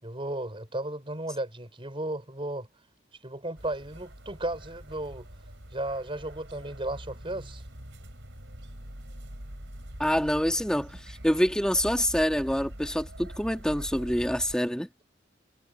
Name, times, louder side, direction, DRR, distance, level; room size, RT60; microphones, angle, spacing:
voice 1, 0.0-2.7 3.2-5.3 5.7-7.6, right 1 dB, 25° right, 5.7 m, -34 dB
sound 1, 3.6-14.6, equal, 65° right, 6.9 m, -44 dB
voice 2, 10.0-14.9, equal, 5° left, 1.9 m, -26 dB
head